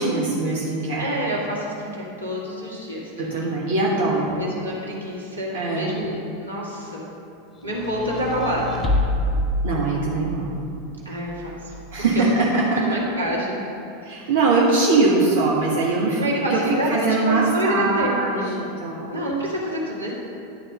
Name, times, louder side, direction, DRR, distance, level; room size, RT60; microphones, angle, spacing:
voice 1, 0.0-1.1 3.2-4.4 5.5-5.9 9.6-10.5 11.9-13.0 14.0-16.2 16.5-16.6 16.9-19.1, right 3 dB, 60° right, -4 dB, 1.3 m, -22 dB
voice 2, 1.0-3.4 4.4-7.1 7.6-8.9 11.1-12.3 12.7-13.6 14.1-14.3 16.2-18.5 19.1-20.1, equal, 85° right, -4 dB, 1.9 m, -27 dB
sound 1, 7.6-10.4 11.3-12.2, left 1 dB, 20° left, 1.1 m, -27 dB
11.0 x 4.4 x 6.5 m, 2.8 s
figure-of-eight pair, 85°, 0 cm